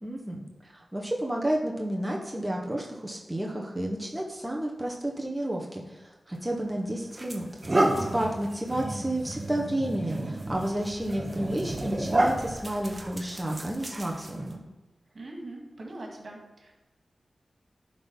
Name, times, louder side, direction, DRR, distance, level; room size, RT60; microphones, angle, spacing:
voice 1, 0.0-7.5 8.1-14.6, right 1 dB, 15° right, -1 dB, 1.3 m, -31 dB
sound 1, 6.4-6.5 7.1-14.5, right 1 dB, 30° right, 1.3 m, -30 dB
voice 2, 15.1-16.7, right 2 dB, 65° right, -1 dB, 2.2 m, -41 dB
10.5 x 3.9 x 5.5 m, 1.2 s
cardioid pair, 55°, 0 cm